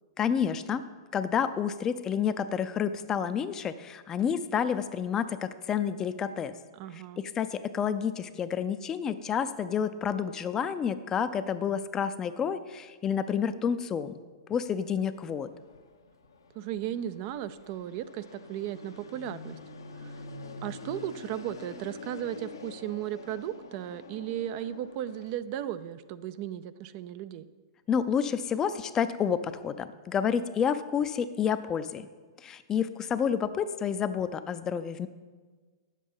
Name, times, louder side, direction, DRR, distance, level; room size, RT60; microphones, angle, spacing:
voice 1, 0.2-0.8 1.1-6.5 6.9-14.1 14.5-15.5 27.9-32.1 32.4-35.1, left 7 dB, 25° left, 12 dB, 0.5 m, -29 dB
voice 2, 6.7-7.2 16.5-19.6 19.9-20.2 20.6-27.5, right 11 dB, 45° right, 13 dB, 0.4 m, -36 dB
Fixed-wing aircraft airplane, 15.1-25.3, left 3 dB, 85° left, 1.0 m, -46 dB
9.3 x 7.4 x 5.4 m, 1.4 s
hypercardioid pair, 110°, 2 cm